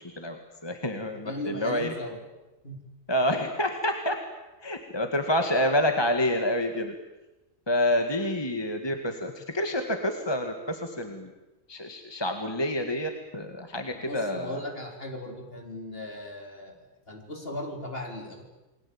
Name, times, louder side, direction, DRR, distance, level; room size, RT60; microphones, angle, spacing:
voice 1, 0.2-1.9 3.1-4.2 4.6-6.9 7.7-11.3 11.7-14.6, left 1 dB, 20° left, 5 dB, 2.0 m, -28 dB
voice 2, 1.2-2.2 2.6-2.8 14.1-18.4, left 1 dB, 45° left, 2 dB, 4.6 m, -37 dB
29.5 x 21.0 x 8.8 m, 1.1 s
omnidirectional pair, 1.4 m